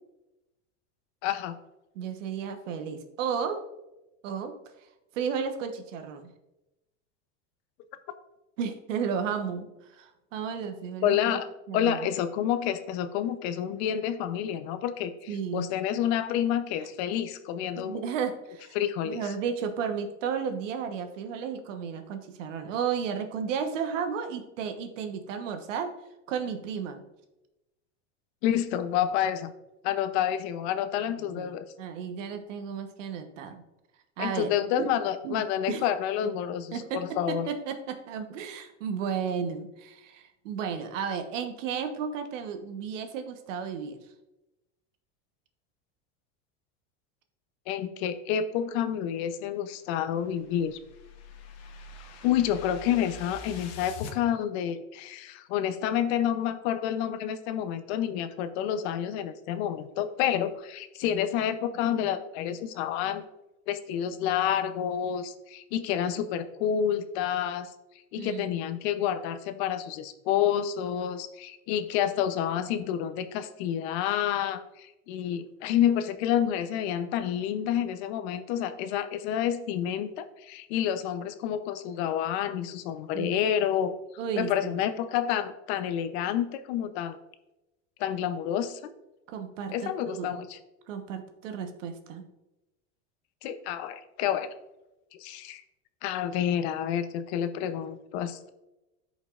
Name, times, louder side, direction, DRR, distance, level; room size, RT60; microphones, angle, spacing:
voice 1, 1.2-1.6 11.0-11.5 11.7-18.0 18.7-19.2 28.4-29.5 29.8-31.6 34.2-37.5 47.7-50.8 52.2-63.2 63.7-67.7 68.1-83.9 84.4-87.2 88.0-88.9 89.7-90.6 93.4-94.5 95.1-95.6 96.0-98.5, left 10 dB, 60° left, 11 dB, 0.8 m, -29 dB
voice 2, 1.9-3.6 4.2-4.5 5.1-6.3 8.6-11.2 11.7-12.1 15.3-15.7 17.8-18.8 19.0-25.9 26.3-27.0 31.2-31.5 31.8-33.6 34.2-34.5 34.8-34.9 35.2-35.8 36.7-37.0 37.3-44.0 68.2-68.6 83.1-83.4 84.2-84.8 89.3-90.3 90.9-92.2, right 7 dB, 85° right, 7 dB, 1.2 m, -33 dB
sound 1, 50.1-54.2, left 5 dB, 45° left, 1.2 m, -44 dB
13.5 x 5.3 x 2.5 m, 0.96 s
supercardioid pair, 140°, 36 cm